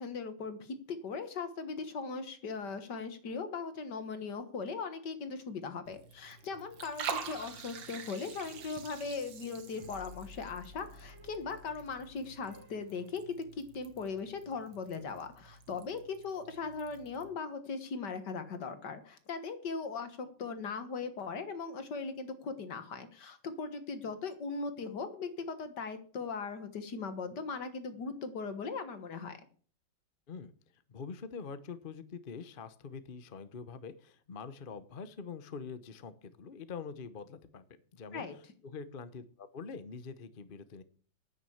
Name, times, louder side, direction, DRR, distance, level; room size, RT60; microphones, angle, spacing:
voice 1, 0.0-29.4 38.1-38.4, left 4 dB, 60° left, 10 dB, 2.1 m, -39 dB
Liquid, 5.9-17.3, right 6 dB, 70° right, 2.1 m, -47 dB
sound 1, 7.4-13.1, left 2 dB, 45° right, 3.3 m, -56 dB
voice 2, 30.9-40.8, left 5 dB, 40° left, 12 dB, 0.7 m, -45 dB
9.8 x 9.4 x 7.2 m, 0.44 s
omnidirectional pair, 2.1 m